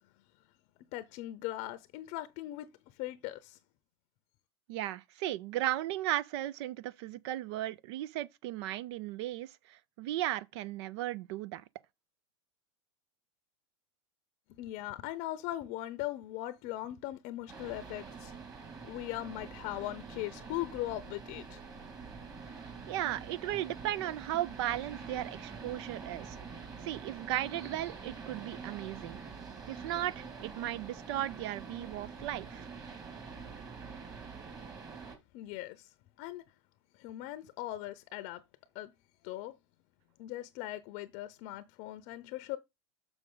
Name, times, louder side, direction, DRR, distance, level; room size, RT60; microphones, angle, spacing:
voice 1, 0.9-2.7 3.0-3.6 14.6-18.3 18.8-21.6 35.3-35.9 36.2-36.4 37.0-38.4 38.7-38.9 39.2-39.5 40.2-42.6, left 15 dB, 50° left, 0.7 m, -39 dB
voice 2, 4.7-11.6 22.9-26.4 26.8-29.2 29.7-32.7, right 14 dB, 60° right, 0.6 m, -36 dB
sound 1, 17.5-35.2, right 5 dB, 25° right, 2.3 m, -46 dB
6.4 x 6.2 x 3.8 m
hypercardioid pair, 115°, 16 cm